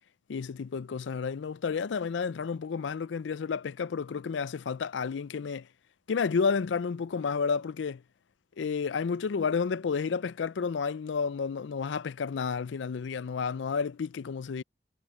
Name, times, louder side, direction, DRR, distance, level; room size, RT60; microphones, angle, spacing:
voice 1, 0.3-5.7 6.1-8.0 8.6-14.6, left 5 dB, 80° left, 0.4 m, -31 dB
head